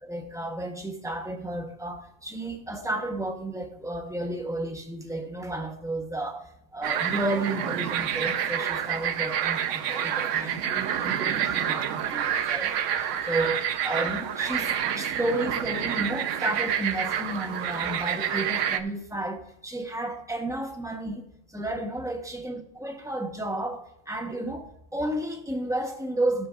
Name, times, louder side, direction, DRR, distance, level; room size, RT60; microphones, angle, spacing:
voice 1, 0.0-6.4 6.7-12.7 13.3-21.2 21.5-24.7 24.9-26.5, right 1 dB, 5° right, 3 dB, 0.9 m, -32 dB
sound 1, 6.8-18.8, right 9 dB, 75° right, 1.0 m, -28 dB
14.0 x 6.7 x 2.5 m, 0.76 s
omnidirectional pair, 1.3 m